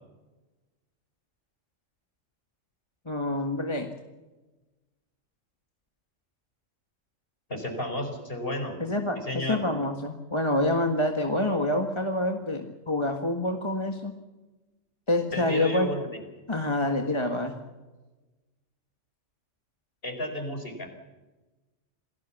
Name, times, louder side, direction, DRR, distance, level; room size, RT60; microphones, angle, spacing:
voice 1, 3.0-3.9 8.8-14.1 15.1-15.9 16.5-17.5, left 1 dB, 20° left, 4 dB, 1.8 m, -27 dB
voice 2, 7.5-8.7 9.2-9.6 15.3-16.2 20.0-20.9, left 1 dB, 45° left, 5 dB, 5.0 m, -32 dB
27.5 x 18.5 x 7.3 m, 1.1 s
omnidirectional pair, 1.3 m